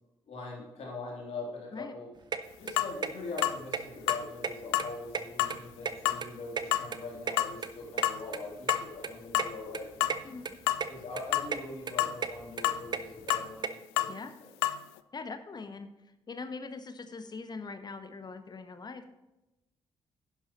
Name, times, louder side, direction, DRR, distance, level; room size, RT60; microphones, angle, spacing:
voice 1, 0.3-2.1 2.6-10.4 10.9-14.1 14.4-14.5, left 3 dB, 50° left, -2 dB, 3.1 m, -42 dB
sound 1, 2.3-2.4 2.7-3.1 3.4-3.5 3.7-3.8 4.1-4.8 5.1-6.3 6.6-8.1 8.3-8.4 8.7-8.8 9.0-9.1 9.4-9.5 9.7-10.2 10.4-10.9 11.1-11.6 11.9-13.7, right 5 dB, 35° right, 0.7 m, -34 dB
sound 2, 2.8-2.9 3.4-3.6 4.1-4.3 4.7-4.9 5.4-5.6 6.1-6.2 6.7-6.9 7.4-7.6 8.0-8.2 8.7-8.9 9.3-9.7 10.0-10.2 10.7-10.8 11.3-11.5 12.0-12.2 12.6-12.8 13.3-13.5 14.0-14.1 14.6-14.8, left 14 dB, 70° left, 0.4 m, -28 dB
voice 2, 15.1-15.9 16.3-19.1, left 4 dB, 30° left, 10 dB, 1.0 m, -42 dB
10.5 x 10.5 x 3.0 m, 0.95 s
figure-of-eight pair, 40°, 13 cm